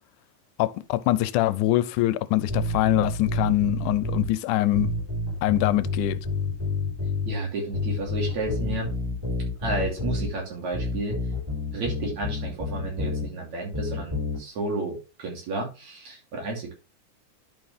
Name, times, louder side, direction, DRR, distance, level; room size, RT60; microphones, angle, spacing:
voice 1, 0.6-4.9 5.4-6.2, left 15 dB, 85° left, 2.1 m, -23 dB
sound 1, 2.5-4.3 4.7-7.3 7.7-10.3 10.7-13.3 13.7-14.4, left 2 dB, 10° right, 3.4 m, -29 dB
voice 2, 7.3-8.9 9.6-11.2 11.7-16.7, right 2 dB, 65° right, 4.2 m, -31 dB
11.0 x 5.6 x 3.3 m
omnidirectional pair, 3.5 m